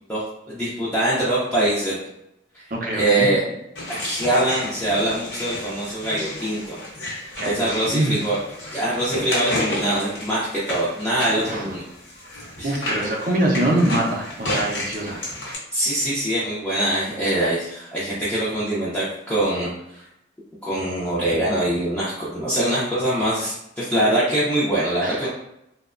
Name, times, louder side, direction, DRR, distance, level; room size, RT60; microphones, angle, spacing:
voice 1, 0.1-2.0 2.5-2.6 2.9-3.4 4.0-6.8 7.4-8.4 8.7-11.8 12.6-12.8 15.7-20.0 20.6-25.3, right 1 dB, 5° left, -10 dB, 0.4 m, -23 dB
voice 2, 2.7-3.3 7.4-8.3 11.4-11.7 12.6-15.2 25.0-25.3, right 1 dB, 45° right, -1 dB, 0.5 m, -24 dB
sound 1, 3.7-15.6, left 1 dB, 60° left, 0.6 m, -31 dB
2.9 x 2.1 x 2.4 m, 0.82 s
head